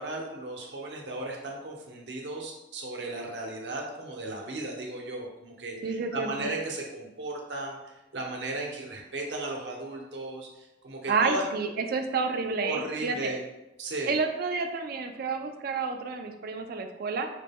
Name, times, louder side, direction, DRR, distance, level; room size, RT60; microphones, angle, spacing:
voice 1, 0.0-11.5 12.6-13.4 13.8-14.1, right 2 dB, 70° right, 0 dB, 0.8 m, -36 dB
voice 2, 5.8-6.5 11.1-13.3 14.1-17.3, right 4 dB, 55° right, 6 dB, 0.4 m, -30 dB
4.8 x 2.2 x 3.5 m, 0.98 s
head